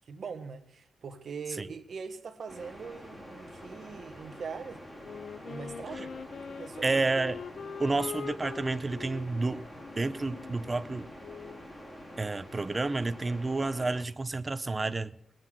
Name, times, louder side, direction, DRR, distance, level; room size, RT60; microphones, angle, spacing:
voice 1, 0.1-4.8 5.4-7.1, right 5 dB, 50° right, 1.2 m, -42 dB
sound 1, 2.5-14.0, equal, 15° left, 2.3 m, -47 dB
Wind instrument woodwind instrument, 5.0-11.7, left 6 dB, 55° left, 0.5 m, -43 dB
voice 2, 6.8-7.4 7.8-9.6 10.0-11.1 12.2-15.1, right 3 dB, 20° right, 0.6 m, -30 dB
20.5 x 7.7 x 6.3 m
wide cardioid pair, 155°, 0 cm